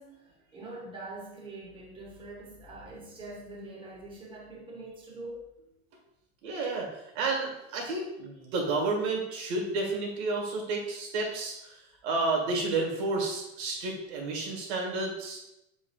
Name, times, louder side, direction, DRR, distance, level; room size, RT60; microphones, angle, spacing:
voice 1, 0.0-5.5, right 2 dB, 15° right, -2 dB, 0.8 m, -44 dB
voice 2, 6.4-15.4, right 3 dB, 85° right, 0 dB, 1.6 m, -31 dB
7.1 x 3.1 x 2.4 m, 0.86 s
cardioid pair, 165°, 32 cm